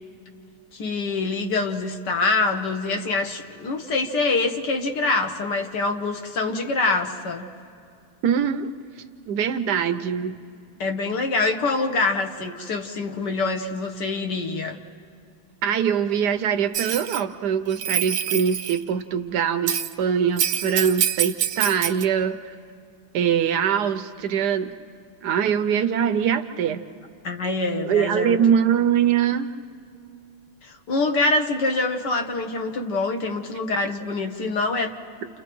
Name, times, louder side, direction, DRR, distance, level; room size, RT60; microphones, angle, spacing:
voice 1, 0.7-7.5 10.8-14.8 27.2-28.4 30.6-35.0, left 3 dB, 60° left, 5 dB, 1.4 m, -25 dB
voice 2, 8.2-8.7 9.3-10.3 15.6-22.5 23.1-24.7 25.2-26.8 27.9-29.5, right 8 dB, 70° right, 8 dB, 1.0 m, -23 dB
Bell, 16.7-17.2 17.7-18.8 19.7-19.9 20.4-22.0, right 11 dB, 85° right, 1.6 m, -26 dB
30.0 x 29.5 x 3.0 m, 2.4 s
omnidirectional pair, 2.3 m